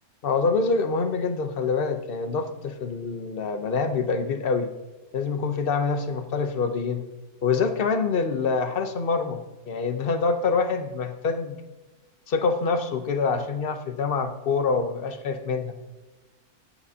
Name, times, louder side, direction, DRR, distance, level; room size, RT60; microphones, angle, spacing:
voice 1, 0.2-4.7 5.1-7.0 7.4-11.6 12.3-15.8, left 4 dB, 45° left, 8 dB, 0.9 m, -26 dB
14.0 x 11.0 x 2.8 m, 1.1 s
omnidirectional pair, 1.6 m